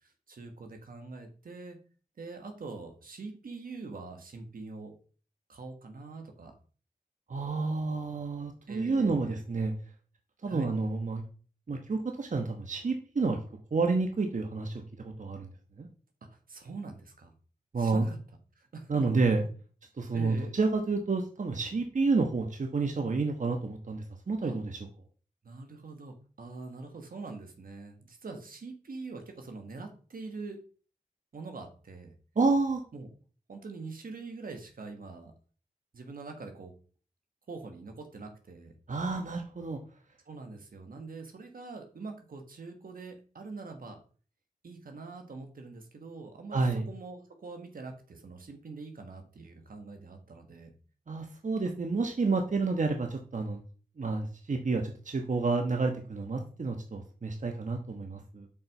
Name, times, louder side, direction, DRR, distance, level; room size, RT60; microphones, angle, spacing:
voice 1, 0.0-1.8 2.2-4.9 5.5-6.5 8.7-9.4 10.4-10.7 16.3-17.3 17.8-18.2 18.6-19.1 20.1-20.6 24.4-24.6 25.4-30.6 31.3-32.1 32.9-33.1 33.5-35.3 35.9-36.7 37.5-38.7 40.2-44.0 44.6-50.7, right 3 dB, 75° right, 4 dB, 1.6 m, -44 dB
voice 2, 7.3-9.7 10.4-11.2 11.7-13.4 13.7-15.5 15.8-15.9 17.7-18.0 18.9-19.4 20.0-24.8 32.4-32.8 38.9-39.8 46.5-46.8 51.1-53.6 54.0-58.5, right 3 dB, 55° right, 4 dB, 1.2 m, -29 dB
7.4 x 4.6 x 5.4 m, 0.40 s
cardioid pair, 45°, 15 cm